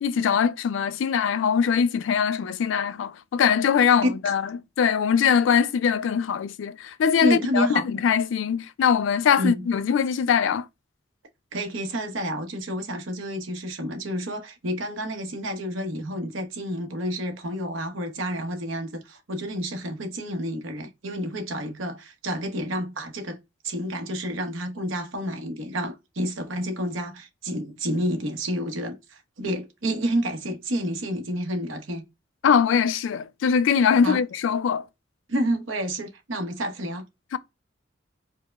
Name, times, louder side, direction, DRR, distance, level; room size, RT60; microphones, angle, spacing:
voice 1, 0.0-4.5 4.8-10.7 32.4-34.9 37.3-37.4, left 7 dB, 70° left, 0.3 m, -22 dB
voice 2, 3.8-4.3 7.2-7.8 9.4-9.7 11.5-23.4 23.6-32.0 34.0-34.2 35.3-37.0, equal, 80° right, 0.9 m, -29 dB
4.7 x 2.0 x 2.2 m
head